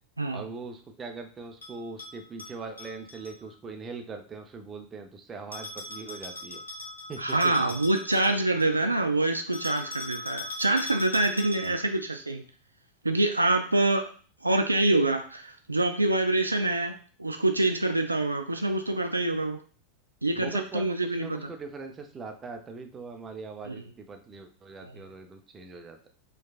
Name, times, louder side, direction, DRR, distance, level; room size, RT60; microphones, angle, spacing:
voice 1, 0.3-6.6 7.1-7.5 11.7-11.8 20.3-26.1, right 4 dB, 25° right, 4 dB, 0.6 m, -41 dB
Bell, 1.6-3.3 5.5-8.8 9.5-11.9, left 2 dB, 85° left, 0.8 m, -40 dB
voice 2, 7.2-12.4 13.0-14.1 14.4-19.6 20.2-21.5 23.7-23.8, right 2 dB, 85° right, 6 dB, 0.3 m, -26 dB
4.5 x 2.3 x 2.4 m, 0.40 s
figure-of-eight pair, 85°, 0 cm